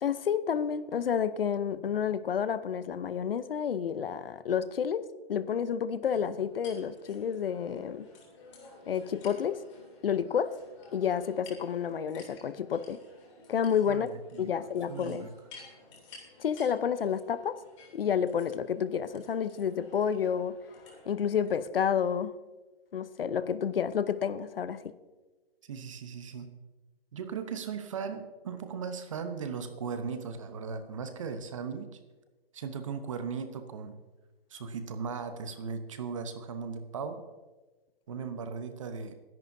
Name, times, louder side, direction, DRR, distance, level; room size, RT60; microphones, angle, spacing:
voice 1, 0.0-8.0 8.9-9.6 10.0-10.5 10.9-13.0 13.5-14.1 14.4-15.3 16.4-17.6 17.9-20.6 21.1-22.3 22.9-24.9, left 8 dB, 70° left, 14 dB, 0.8 m, -30 dB
sound 1, 6.1-21.6, left 3 dB, 30° left, 3.0 m, -54 dB
voice 2, 13.8-14.5 14.9-15.3 25.6-26.5 27.1-31.9 32.5-34.0 34.5-37.2 38.1-39.2, right 5 dB, 35° right, 9 dB, 0.9 m, -37 dB
21.5 x 10.5 x 2.7 m, 1.2 s
hypercardioid pair, 170°, 30 cm